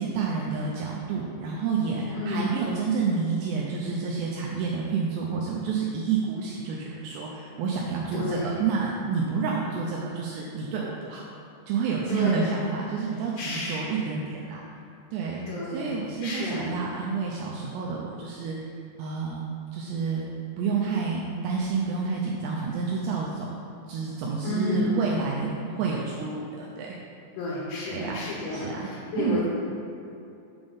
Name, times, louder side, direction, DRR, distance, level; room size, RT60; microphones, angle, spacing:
voice 1, 0.0-11.2 11.7-14.6 15.1-15.5 15.7-18.6 19.0-19.5 19.7-20.2 20.6-23.5 23.9-27.0 27.9-28.2 28.5-28.9 29.2-29.4, right 5 dB, 90° right, -3 dB, 2.4 m, -29 dB
voice 2, 2.1-2.5 8.1-8.7 12.1-12.4 13.4-14.2 15.5-16.7 24.4-24.9 27.4-29.4, left 1 dB, 80° left, -7 dB, 3.4 m, -31 dB
8.0 x 3.5 x 5.3 m, 2.6 s
omnidirectional pair, 5.6 m